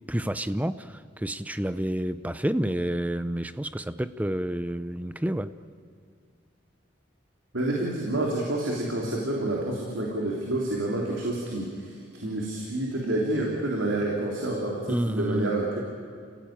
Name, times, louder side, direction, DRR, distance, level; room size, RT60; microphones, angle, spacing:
voice 1, 0.1-5.5 14.9-15.5, right 1 dB, 10° right, 12 dB, 0.6 m, -29 dB
voice 2, 7.5-11.7 12.2-15.8, right 1 dB, 85° right, -2 dB, 3.6 m, -28 dB
30.0 x 17.0 x 9.0 m, 2.2 s
head